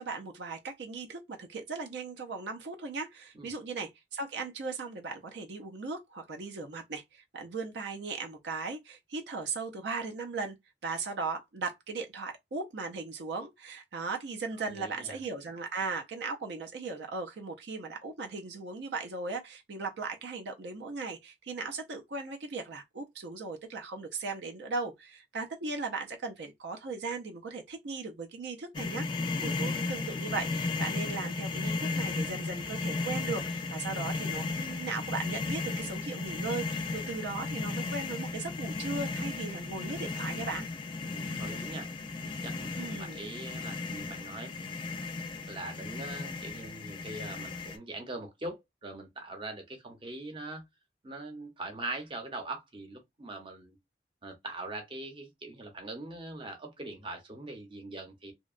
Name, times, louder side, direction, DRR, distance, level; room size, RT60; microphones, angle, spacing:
voice 1, 0.0-10.6 10.8-40.7 42.8-43.2, right 4 dB, 70° right, 0.5 m, -38 dB
voice 2, 14.6-15.2 41.0-41.9 42.2-44.5 45.5-50.6 51.0-53.8 54.2-58.3, right 2 dB, 30° right, 0.7 m, -42 dB
sound 1, 28.7-47.8, left 3 dB, 25° left, 0.3 m, -35 dB
2.7 x 2.2 x 2.4 m
head